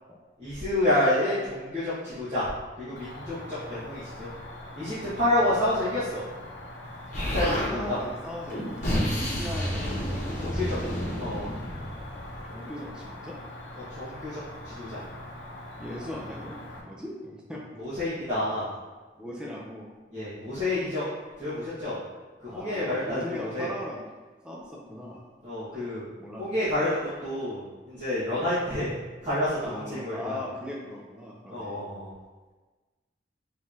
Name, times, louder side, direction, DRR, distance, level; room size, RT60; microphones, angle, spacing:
voice 1, 0.4-2.5 2.8-4.3 4.8-6.2 7.2-8.0 10.4-10.7 11.2-11.6 13.8-15.0 17.8-18.7 20.1-21.0 21.4-22.0 22.4-23.7 25.4-26.0 26.4-29.0 29.2-30.4 31.5-32.1, left 1 dB, 35° right, -15 dB, 1.5 m, -29 dB
Cricket, 3.0-16.8, left 1 dB, 75° left, 0.7 m, -42 dB
Explosion, 7.1-7.7 8.5-12.4, equal, 40° left, 1.0 m, -30 dB
voice 2, 7.7-10.0 10.5-10.9 12.5-13.4 14.1-14.2 15.8-17.6 19.1-19.9 20.6-20.9 22.5-24.0 24.4-25.2 25.7-25.8 26.2-26.6 29.6-31.8, left 1 dB, 5° right, -4 dB, 0.5 m, -39 dB
5.5 x 3.1 x 2.7 m, 1.3 s
head